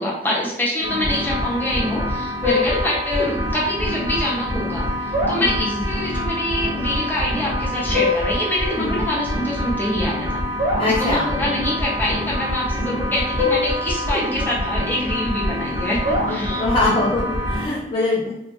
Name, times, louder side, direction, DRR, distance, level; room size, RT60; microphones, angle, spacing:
voice 1, 0.0-10.4 10.8-16.6, left 1 dB, 10° left, -5 dB, 1.0 m, -25 dB
sound 1, 0.8-17.7, left 1 dB, 20° right, 1.5 m, -24 dB
voice 2, 10.8-11.4 12.9-13.0 16.3-18.3, left 2 dB, 30° left, -5 dB, 0.5 m, -23 dB
3.4 x 2.8 x 3.1 m, 0.87 s
head